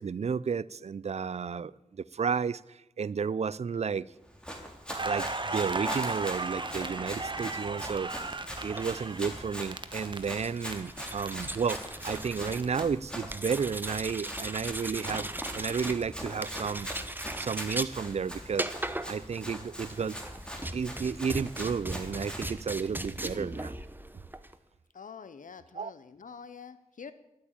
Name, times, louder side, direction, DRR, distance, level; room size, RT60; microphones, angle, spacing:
voice 1, 0.0-4.0 5.0-8.1 8.6-16.9 17.4-18.7 19.1-20.2 20.7-23.7 25.7-25.9, right 6 dB, 55° right, 0.4 m, -32 dB
Run, 4.3-22.5, equal, 5° left, 3.2 m, -42 dB
Crackle, 4.9-10.7 11.0-12.8, right 3 dB, 35° right, 1.2 m, -36 dB
sound 1, 8.7-24.6, right 1 dB, 15° right, 0.9 m, -39 dB
voice 2, 24.9-27.1, left 6 dB, 75° left, 0.8 m, -46 dB
12.5 x 8.8 x 8.8 m
cardioid pair, 50°, 14 cm